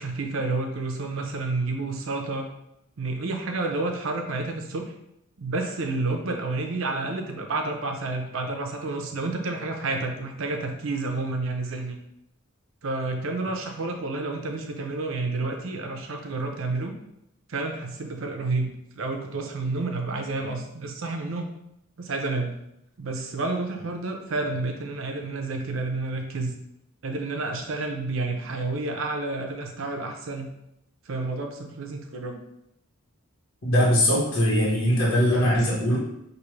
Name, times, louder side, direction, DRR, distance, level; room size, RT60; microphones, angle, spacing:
voice 1, 0.0-2.5 3.0-4.9 5.4-12.0 12.8-16.9 17.5-21.5 22.0-22.5 23.0-26.5 27.0-30.5 31.1-32.4, right 3 dB, 70° right, 3 dB, 0.6 m, -30 dB
voice 2, 33.6-36.0, equal, 75° left, -6 dB, 1.3 m, -21 dB
5.1 x 2.6 x 3.2 m, 0.81 s
head